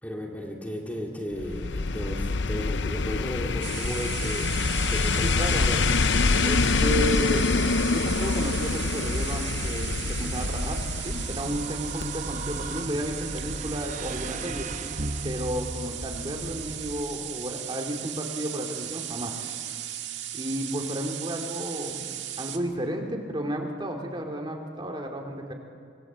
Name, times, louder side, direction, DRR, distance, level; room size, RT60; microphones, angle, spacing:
voice 1, 0.0-4.5 4.9-5.9, equal, 10° left, -1 dB, 2.5 m, -34 dB
sound 1, 1.4-11.7 12.0-12.1, left 4 dB, 75° left, 0.7 m, -26 dB
sound 2, 3.6-22.6, right 11 dB, 75° right, 1.7 m, -37 dB
voice 2, 5.2-5.7 6.4-7.5 7.9-14.7 15.2-19.3 20.3-22.1 22.4-25.5, equal, 25° right, 1 dB, 2.9 m, -32 dB
sound 3, 10.1-17.0, right 1 dB, 40° right, 1.1 m, -36 dB
26.0 x 22.0 x 7.6 m, 2.5 s
head